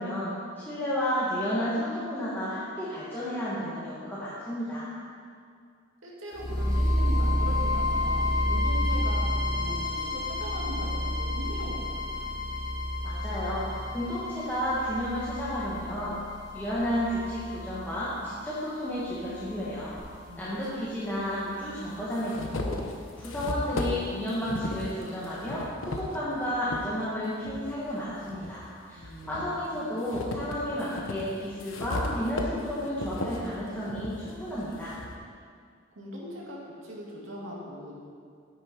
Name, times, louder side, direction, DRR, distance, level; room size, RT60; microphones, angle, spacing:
voice 1, 0.0-4.9 13.0-13.7 13.9-16.2 16.5-19.9 20.4-22.8 23.2-34.9, equal, 10° left, -10 dB, 1.6 m, -32 dB
voice 2, 6.0-12.3 20.3-20.9 28.9-29.4 29.7-29.8 36.0-36.6 36.8-37.9, equal, 80° right, -4 dB, 2.4 m, -40 dB
sound 1, 6.3-20.3, left 1 dB, 20° right, 2.4 m, -30 dB
sound 2, 20.0-20.1 21.1-21.2 21.7-26.9 27.4-28.6 29.0-35.2, left 2 dB, 90° left, 1.0 m, -36 dB
9.4 x 9.3 x 4.5 m, 2.2 s
head